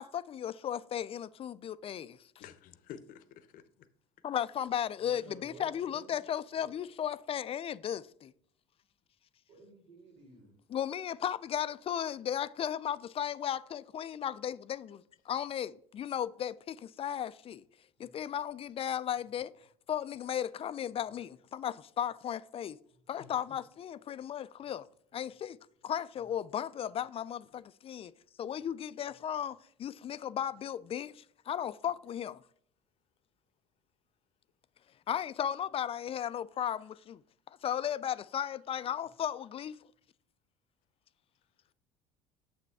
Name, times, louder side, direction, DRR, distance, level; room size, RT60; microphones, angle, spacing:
voice 1, 0.0-2.4 4.2-8.3 10.7-17.6 18.0-19.5 19.9-22.8 23.1-24.9 25.1-25.6 25.8-28.1 28.4-32.4 35.1-37.2 37.5-39.8, left 9 dB, 35° left, 0.4 m, -35 dB
voice 2, 2.4-3.9 23.1-23.3, left 9 dB, 60° left, 0.7 m, -50 dB
voice 3, 5.0-6.2 6.5-6.7 9.5-10.5 18.0-18.1, right 3 dB, 75° right, 2.7 m, -54 dB
7.1 x 6.7 x 3.5 m
hypercardioid pair, 70°, 16 cm